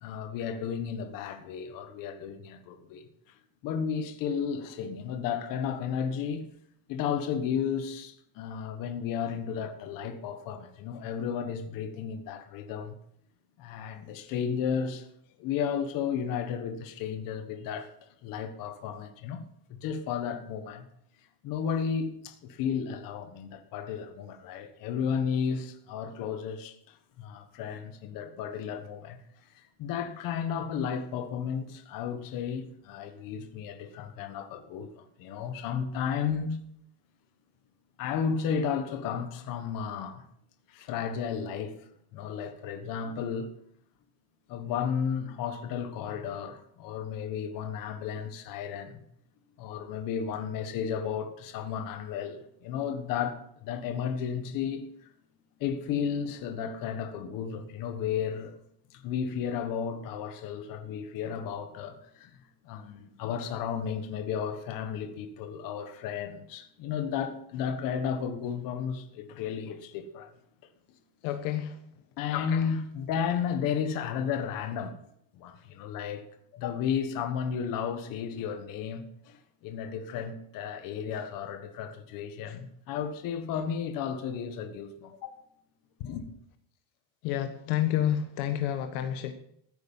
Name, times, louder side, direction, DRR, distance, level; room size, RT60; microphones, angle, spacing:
voice 1, 0.0-3.1 3.6-6.4 6.9-13.0 13.6-15.1 15.4-17.9 18.2-19.4 19.7-20.9 21.4-29.2 29.5-36.6 38.0-40.2 40.7-41.8 42.1-43.5 44.5-49.0 49.6-54.8 55.6-58.6 58.9-62.4 62.6-70.3 72.2-75.0 75.3-76.2 76.5-85.5 86.0-86.3, left 7 dB, 45° left, 1.5 m, -33 dB
voice 2, 71.2-71.7 87.2-89.3, left 11 dB, 65° left, 1.3 m, -29 dB
15.0 x 9.1 x 5.6 m
cardioid pair, 165°, 44 cm